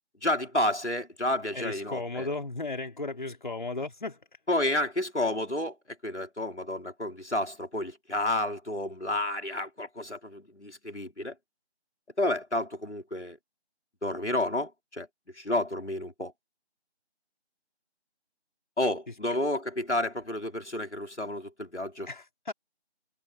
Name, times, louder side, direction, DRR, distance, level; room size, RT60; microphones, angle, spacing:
voice 1, 0.2-2.3 4.5-5.8 6.0-11.3 12.2-13.4 14.0-15.1 15.3-16.3 18.8-22.1, left 1 dB, 85° left, 5.1 m, -30 dB
voice 2, 1.5-4.2 22.1-22.5, left 3 dB, 45° left, 4.3 m, -35 dB
figure-of-eight pair, 165°, 33 cm